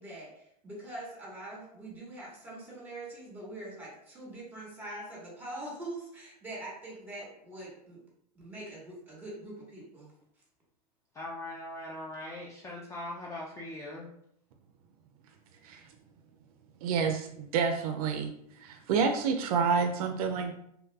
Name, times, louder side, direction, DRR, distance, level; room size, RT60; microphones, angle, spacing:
voice 1, 0.0-8.0 8.3-10.1, right 1 dB, 10° right, -5 dB, 1.3 m, -43 dB
voice 2, 11.1-14.1, left 1 dB, 15° left, -3 dB, 0.3 m, -40 dB
voice 3, 16.8-18.3 18.6-20.5, right 5 dB, 65° right, 5 dB, 0.4 m, -28 dB
3.0 x 2.3 x 2.2 m, 0.71 s
hypercardioid pair, 120°, 21 cm